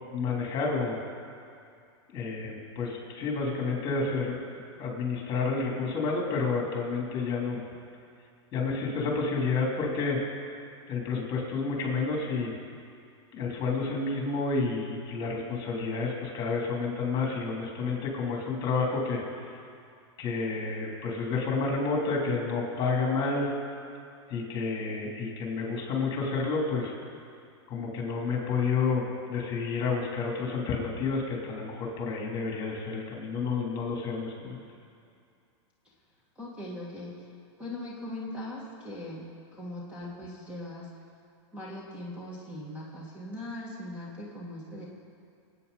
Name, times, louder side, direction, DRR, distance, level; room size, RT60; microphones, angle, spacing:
voice 1, 0.1-1.0 2.1-4.4 4.8-7.6 8.5-10.2 10.9-12.6 13.3-19.2 19.5-19.6 20.2-23.5 24.3-26.9 27.7-34.6, left 4 dB, 30° left, -1 dB, 3.3 m, -30 dB
voice 2, 36.4-37.1 37.6-40.9 41.5-44.9, left 1 dB, 10° right, -6 dB, 2.1 m, -40 dB
25.0 x 9.1 x 4.2 m, 2.4 s
supercardioid pair, 150°, 15 cm